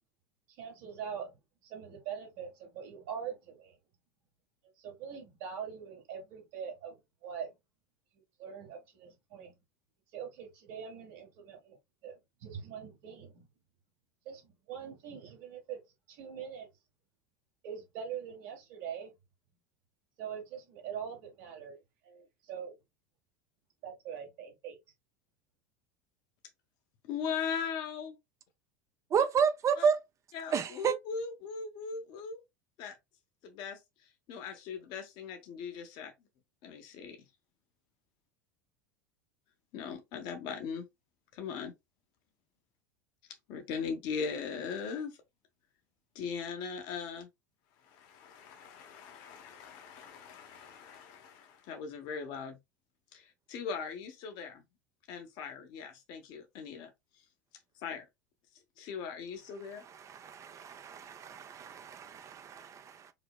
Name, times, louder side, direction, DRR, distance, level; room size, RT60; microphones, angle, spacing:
voice 1, 0.6-1.3 1.6-3.8 4.8-7.5 8.4-9.5 10.1-11.8 12.0-13.4 14.2-15.8 16.1-16.7 17.6-19.1 20.2-21.8 22.0-22.7 23.8-24.8, right 7 dB, 65° right, 1.3 m, -43 dB
voice 2, 27.0-28.2 29.8-29.9 30.3-32.4 32.8-33.0 33.4-36.1 36.6-37.2 39.7-40.8 41.3-41.7 43.5-45.2 46.1-47.3 47.8-52.6 53.1-54.6 55.1-56.9 57.8-58.0 58.8-59.8, left 6 dB, 55° left, 0.8 m, -39 dB
voice 3, 29.1-30.0 30.5-31.0 59.9-60.2 61.1-63.1, right 7 dB, 35° right, 0.4 m, -30 dB
5.0 x 2.0 x 2.2 m
hypercardioid pair, 80°, 9 cm